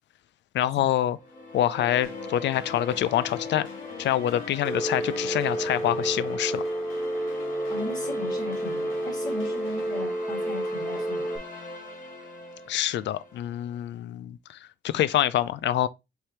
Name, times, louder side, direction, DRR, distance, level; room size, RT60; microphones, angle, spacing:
voice 1, 0.5-1.2 1.5-3.7 4.0-6.6 12.7-14.6 14.8-15.9, left 12 dB, 65° left, 0.4 m, -26 dB
sound 1, 1.2-13.5, left 2 dB, 40° left, 1.9 m, -41 dB
sound 2, 2.0-10.0, left 6 dB, 90° left, 1.3 m, -47 dB
Telephone, 4.6-11.4, right 1 dB, ahead, 0.6 m, -30 dB
voice 2, 7.7-11.3, left 1 dB, 20° left, 2.6 m, -37 dB
4.4 x 3.4 x 3.1 m
cardioid pair, 90°, 20 cm